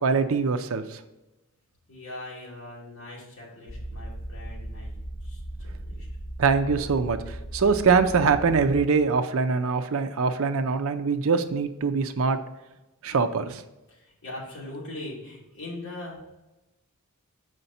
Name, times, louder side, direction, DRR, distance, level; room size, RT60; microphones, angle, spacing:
voice 1, 0.0-0.8 6.4-12.4 13.0-13.6, right 5 dB, 65° right, 9 dB, 0.5 m, -23 dB
voice 2, 1.9-4.9 5.2-6.1 13.9-16.2, left 2 dB, 60° left, -6 dB, 2.5 m, -41 dB
sound 1, 3.7-8.8, right 1 dB, 15° right, 1.3 m, -37 dB
6.7 x 5.0 x 4.2 m, 1.0 s
head